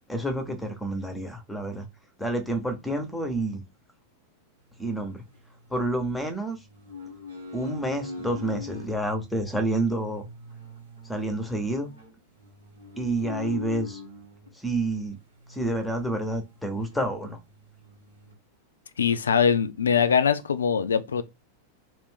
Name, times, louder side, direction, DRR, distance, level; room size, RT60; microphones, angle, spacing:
voice 1, 0.1-1.9 2.2-3.6 4.8-5.2 5.7-6.6 7.5-10.2 11.1-11.9 13.0-14.0 14.5-15.2 15.5-17.4, right 1 dB, 5° left, 0.8 m, -29 dB
sound 1, 4.8-6.0 6.5-8.9 9.5-14.5 15.4-16.6 16.9-17.0 17.4-18.3, left 3 dB, 80° right, 1.3 m, -41 dB
voice 2, 19.0-21.2, left 7 dB, 70° left, 0.3 m, -22 dB
2.6 x 2.5 x 3.5 m
figure-of-eight pair, 90°, 0 cm